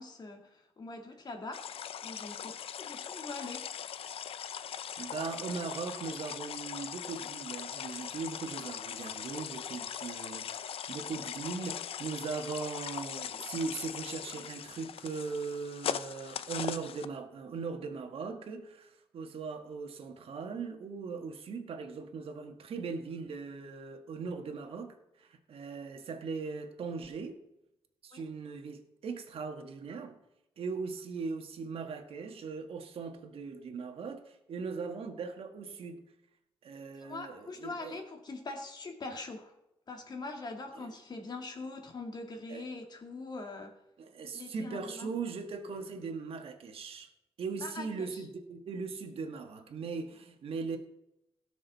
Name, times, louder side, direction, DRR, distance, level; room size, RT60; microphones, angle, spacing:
voice 1, 0.0-3.7 28.1-28.2 37.0-39.5 39.9-43.8 44.3-45.1 47.6-48.2, left 3 dB, 45° left, 2.2 m, -43 dB
sound 1, 1.5-17.1, left 9 dB, 70° left, 0.5 m, -40 dB
voice 2, 4.7-27.4 28.0-30.2 30.6-36.1 36.6-38.0 40.7-40.9 42.5-42.7 44.0-47.1 47.4-50.8, right 5 dB, 70° right, 1.5 m, -39 dB
17.5 x 6.3 x 4.1 m
cardioid pair, 100°, 10 cm